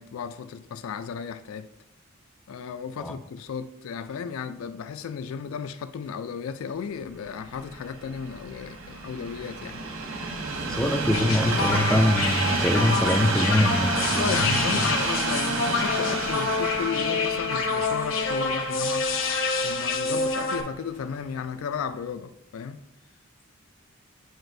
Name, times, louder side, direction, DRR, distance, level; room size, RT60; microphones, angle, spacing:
voice 1, 0.0-1.7 2.5-9.8 14.1-19.1 19.6-22.9, left 6 dB, 85° left, 0.3 m, -34 dB
Train, 7.2-20.4 21.1-21.2, right 3 dB, 80° right, 0.9 m, -30 dB
voice 2, 10.7-14.7, left 1 dB, 5° left, 0.3 m, -24 dB
sound 1, 11.1-20.6, left 4 dB, 70° left, 0.8 m, -27 dB
7.9 x 4.9 x 2.6 m
head